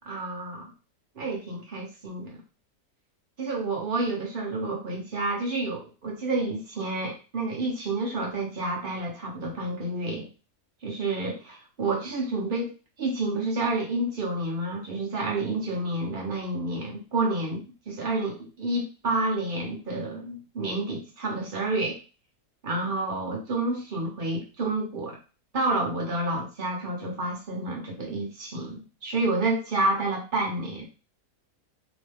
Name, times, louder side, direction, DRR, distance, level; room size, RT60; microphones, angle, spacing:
voice 1, 0.1-0.7 1.2-2.4 3.4-10.3 10.8-12.7 13.0-22.0 22.6-25.2 25.5-30.9, right 2 dB, 40° right, -1 dB, 1.0 m, -29 dB
3.1 x 2.1 x 3.3 m, 0.32 s
omnidirectional pair, 1.6 m